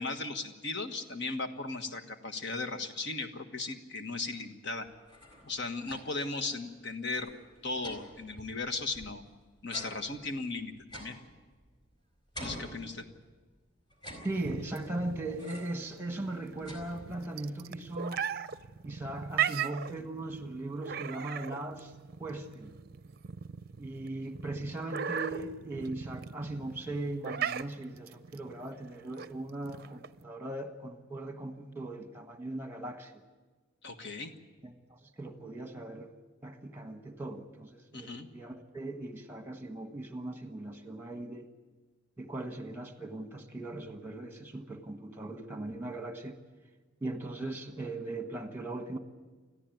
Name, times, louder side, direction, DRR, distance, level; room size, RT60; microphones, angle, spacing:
voice 1, 0.0-4.9 5.4-7.3 7.6-9.2 9.6-11.1 12.4-13.1 33.8-34.3 37.9-38.3, left 3 dB, 60° left, 7 dB, 1.4 m, -37 dB
sound 1, 4.9-6.3 6.7-6.8 7.0-9.3 9.7-11.9 12.3-13.4 13.9-14.8 15.4-15.9 16.2-17.4, equal, 25° left, 4.5 m, -48 dB
voice 2, 14.2-18.2 18.8-21.9 22.2-22.7 23.8-33.1 34.6-36.1 36.4-41.5 42.2-46.4 47.0-49.0, right 2 dB, 10° right, 6 dB, 1.4 m, -39 dB
sound 2, 14.3-30.2, right 8 dB, 50° right, 0.5 m, -38 dB
20.5 x 14.0 x 9.2 m, 1.3 s
head